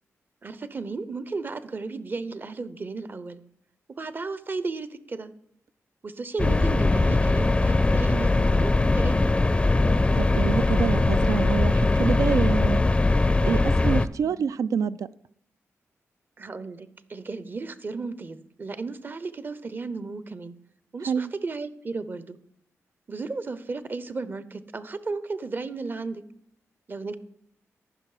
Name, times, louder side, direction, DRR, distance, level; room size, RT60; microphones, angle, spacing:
voice 1, 0.4-3.4 4.0-5.3 6.0-9.2 14.2-14.5 16.4-20.5 20.9-22.4 23.1-26.2 26.9-27.2, right 3 dB, 35° right, 14 dB, 0.7 m, -34 dB
sound 1, 6.4-14.1, left 2 dB, 20° left, 0.5 m, -21 dB
voice 2, 10.1-12.8 13.4-15.1 21.1-21.3, right 6 dB, 75° right, 15 dB, 0.4 m, -27 dB
14.0 x 6.0 x 4.9 m, 0.72 s
cardioid pair, 85°, 6 cm